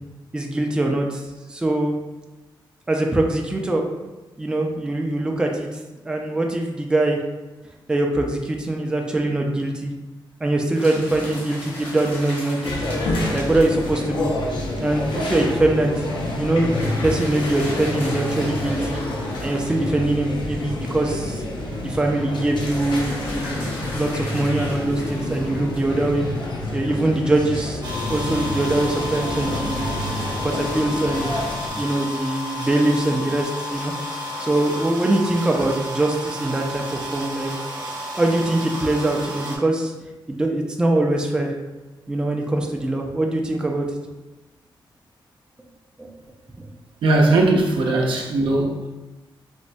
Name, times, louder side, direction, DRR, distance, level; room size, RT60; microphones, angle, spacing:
voice 1, 0.3-1.2 1.5-1.9 2.9-3.8 4.4-5.8 6.1-7.2 7.9-9.9 10.4-12.9 13.3-14.3 14.8-19.0 19.4-21.4 21.8-23.6 23.9-26.2 26.7-31.3 31.7-33.9 34.4-37.5 38.2-39.9 40.3-41.5 42.1-43.9 46.0-46.1 46.6-46.7, right 2 dB, 10° right, 1 dB, 0.4 m, -23 dB
sound 1, 10.7-14.3 16.6-20.5 22.6-26.5, left 1 dB, 85° left, 1.0 m, -37 dB
sound 2, 12.6-31.7, left 1 dB, 60° left, 0.6 m, -28 dB
sound 3, 27.8-39.6, left 1 dB, 50° right, 0.8 m, -32 dB
voice 2, 47.0-48.9, right 2 dB, 75° right, 0 dB, 0.5 m, -19 dB
4.2 x 2.1 x 2.5 m, 1.1 s
cardioid pair, 110°, 9 cm